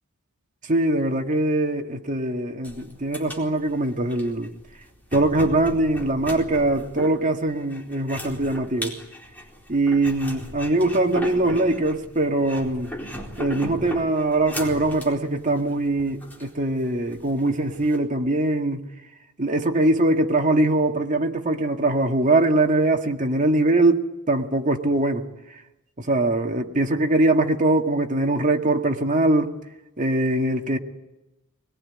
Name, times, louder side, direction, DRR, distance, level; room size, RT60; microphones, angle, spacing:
voice 1, 0.7-4.5 5.1-9.0 9.7-12.9 13.4-18.9 19.4-25.3 26.0-29.5 30.0-30.8, right 2 dB, 35° right, 1.9 m, -22 dB
sound 1, 2.6-18.0, equal, 10° left, 4.2 m, -37 dB
24.0 x 21.0 x 9.8 m
head